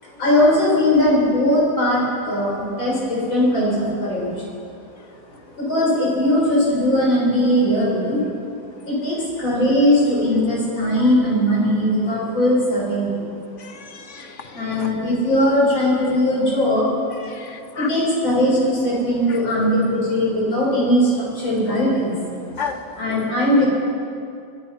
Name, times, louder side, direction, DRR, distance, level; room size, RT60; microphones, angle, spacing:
voice 1, 0.0-4.3 5.5-8.2 8.8-13.2 14.5-17.0 17.7-22.1 23.0-23.7, left 1 dB, 70° left, -5 dB, 8.1 m, -19 dB
voice 2, 13.6-14.7 17.2-17.9 19.3-19.4 22.6-22.8, left 6 dB, 40° left, 7 dB, 1.4 m, -33 dB
25.0 x 22.0 x 5.9 m, 2.5 s
omnidirectional pair, 2.2 m